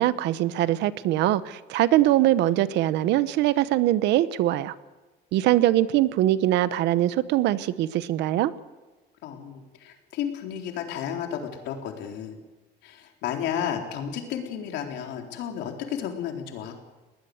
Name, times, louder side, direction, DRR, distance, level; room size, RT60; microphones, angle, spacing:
voice 1, 0.0-4.7 5.3-8.5, right 14 dB, 75° right, 15 dB, 1.0 m, -22 dB
voice 2, 9.2-12.4 12.8-16.7, left 9 dB, 75° left, 3 dB, 4.0 m, -32 dB
21.0 x 19.0 x 8.0 m, 1.2 s
cardioid pair, 165°, 18 cm